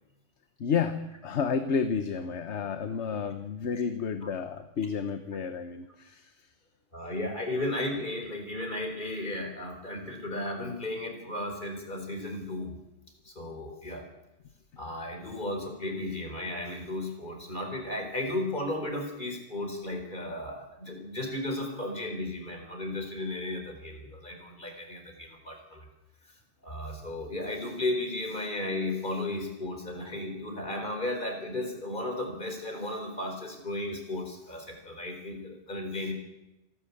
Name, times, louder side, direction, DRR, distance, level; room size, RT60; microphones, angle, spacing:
voice 1, 0.6-6.5, left 6 dB, 65° left, 9 dB, 1.3 m, -31 dB
voice 2, 6.9-12.7 13.2-14.0 14.8-25.9 26.6-36.1, left 1 dB, 40° left, 4 dB, 4.3 m, -34 dB
27.0 x 12.0 x 8.5 m, 0.95 s
omnidirectional pair, 1.3 m